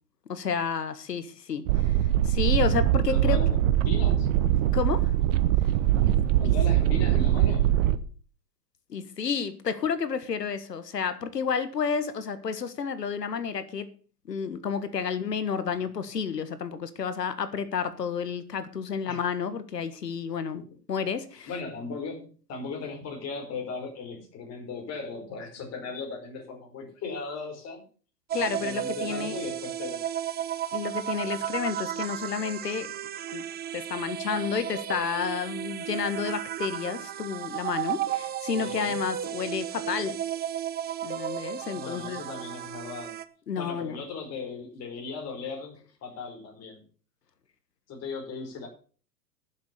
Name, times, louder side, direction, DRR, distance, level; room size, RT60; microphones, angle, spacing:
voice 1, 0.3-2.0 2.2-3.4 4.7-5.1 6.4-6.5 8.9-13.9 14.3-20.6 20.9-21.5 28.3-29.4 30.7-32.9 33.3-33.4 33.7-40.2 41.0-42.2 43.5-44.0, left 6 dB, 90° left, 1.7 m, -31 dB
sound 1, 1.7-8.0, right 12 dB, 50° right, 1.1 m, -22 dB
voice 2, 3.1-4.3 6.4-7.7 15.8-15.9 19.1-19.2 20.5-20.6 21.5-27.8 28.3-30.0 38.5-39.0 41.7-43.1 43.5-46.8 47.9-48.7, left 4 dB, 30° left, 5.0 m, -37 dB
sound 2, 28.3-43.2, right 11 dB, 20° right, 0.8 m, -34 dB
11.5 x 7.5 x 6.8 m
hypercardioid pair, 115°, 47 cm